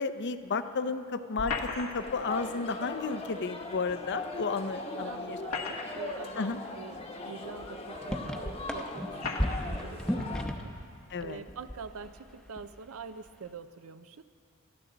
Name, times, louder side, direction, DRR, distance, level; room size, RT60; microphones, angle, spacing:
voice 1, 0.0-5.4 6.4-6.6 11.1-11.4, left 4 dB, 55° left, 11 dB, 0.6 m, -33 dB
sound 1, 1.4-2.2 3.9-4.0 5.2-6.2 7.0-7.1 8.1-8.2 9.2-9.7, left 4 dB, 85° left, 1.5 m, -36 dB
sound 2, 2.0-10.5, left 2 dB, 30° left, 1.1 m, -40 dB
voice 2, 4.9-6.5 6.8-10.8 11.2-14.2, right 5 dB, 70° right, 11 dB, 0.6 m, -45 dB
sound 3, 7.6-7.7 7.9-10.8 11.1-12.2 12.5-12.8, equal, 5° left, 0.9 m, -33 dB
22.5 x 13.5 x 4.0 m, 2.4 s
head